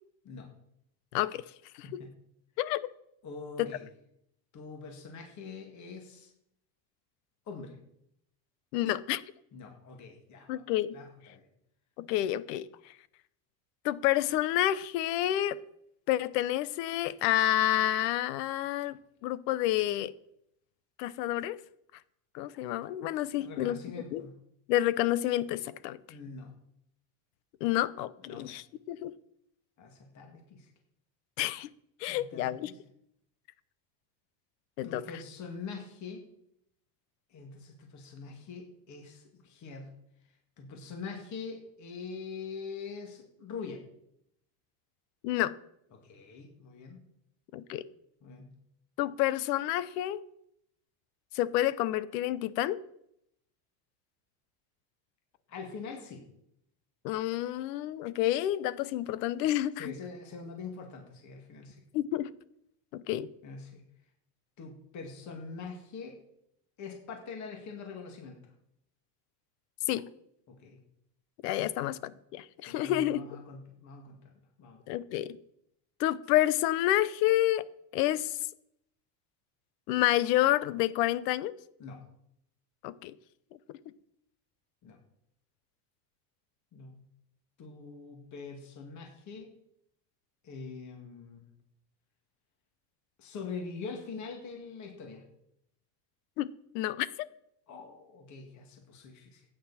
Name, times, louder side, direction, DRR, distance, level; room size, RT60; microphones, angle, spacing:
voice 1, 1.8-2.1 3.2-3.9 4.5-6.3 7.5-7.8 9.5-10.5 10.9-11.5 23.3-24.3 26.1-26.5 28.2-28.4 29.8-30.7 32.1-32.8 34.8-36.2 37.3-39.9 40.6-43.8 45.9-47.0 48.2-48.5 55.5-56.2 59.8-61.8 63.4-63.8 64.6-66.2 66.8-68.4 70.5-70.8 71.8-71.9 72.6-74.2 74.6-74.8 81.8-82.0 84.8-85.0 86.7-87.0 87.6-89.5 90.4-91.5 93.2-95.2 97.7-99.4, left 4 dB, 35° left, 2 dB, 2.4 m, -44 dB
voice 2, 2.6-2.9 8.7-9.2 10.5-11.0 12.0-12.7 13.8-15.6 16.1-20.1 21.0-21.6 22.3-23.8 24.1-24.2 24.7-26.0 27.6-29.1 31.4-31.7 32.0-32.7 34.8-35.0 45.2-45.5 47.5-47.8 49.0-50.2 51.3-52.8 57.0-59.9 61.9-62.3 62.9-63.3 69.9-70.1 71.4-73.2 74.9-75.4 76.0-77.6 77.9-78.4 79.9-81.5 82.8-83.1 96.4-97.1, left 14 dB, 80° left, 17 dB, 0.9 m, -29 dB
15.0 x 9.3 x 4.3 m, 0.75 s
supercardioid pair, 150°, 48 cm